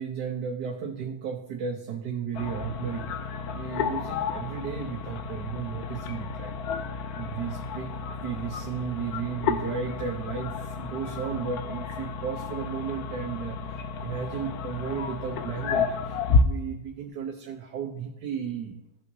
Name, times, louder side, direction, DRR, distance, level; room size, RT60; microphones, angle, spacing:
voice 1, 0.0-3.1 3.5-6.5 7.2-7.9 8.2-13.7 14.0-16.2 16.4-18.8, right 7 dB, 75° right, 1 dB, 1.3 m, -34 dB
sound 1, 2.3-16.4, left 5 dB, 70° left, 1.0 m, -31 dB
16.0 x 5.5 x 2.7 m, 0.89 s
omnidirectional pair, 1.9 m